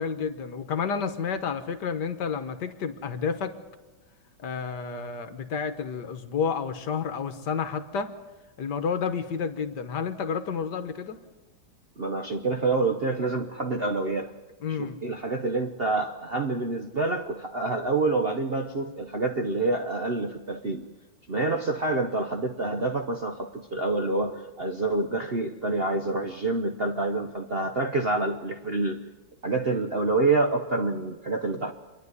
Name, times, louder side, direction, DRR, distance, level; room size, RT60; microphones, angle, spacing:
voice 1, 0.0-3.5 4.4-8.1 8.6-11.2 14.6-15.0, left 6 dB, 65° left, 10 dB, 1.6 m, -30 dB
voice 2, 12.0-14.3 14.8-20.9 21.3-29.0 29.4-31.7, right 3 dB, 45° right, 4 dB, 0.8 m, -27 dB
26.0 x 10.5 x 9.6 m, 1.2 s
omnidirectional pair, 2.1 m